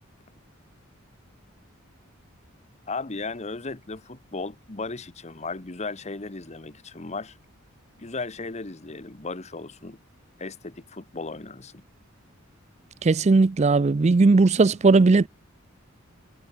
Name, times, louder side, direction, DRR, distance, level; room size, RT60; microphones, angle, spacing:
voice 1, 2.9-7.4 8.0-10.0 10.4-11.8, left 3 dB, 35° left, 1.2 m, -36 dB
voice 2, 13.0-15.3, right 3 dB, 35° right, 0.4 m, -18 dB
head